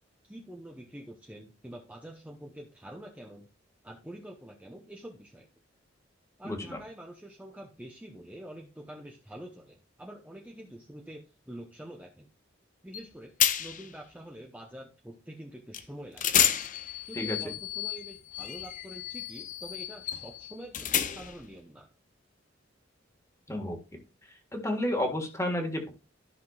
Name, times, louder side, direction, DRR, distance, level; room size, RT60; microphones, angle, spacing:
voice 1, 0.2-3.5 3.8-5.5 6.4-12.3 12.8-13.3 13.6-16.3 17.0-21.9, right 1 dB, 10° right, 1 dB, 0.8 m, -46 dB
voice 2, 6.4-6.8 17.1-17.5 23.5-23.8 24.5-25.9, left 1 dB, 15° left, 3 dB, 1.6 m, -31 dB
sound 1, 12.9-13.1 13.4-13.9 15.7-15.9 16.2-21.5, left 10 dB, 45° left, 0.6 m, -30 dB
13.0 x 5.7 x 2.4 m, 0.31 s
head